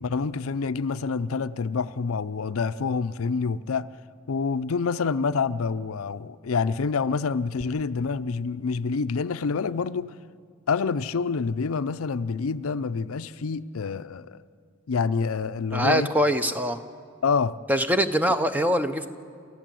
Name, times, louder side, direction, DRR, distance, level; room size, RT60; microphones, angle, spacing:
voice 1, 0.0-3.9 4.3-10.1 10.7-14.4 14.9-16.1 17.2-17.6, left 5 dB, 90° left, 0.5 m, -27 dB
voice 2, 15.7-16.8 17.7-19.1, equal, 10° right, 0.7 m, -23 dB
28.0 x 14.5 x 7.7 m
head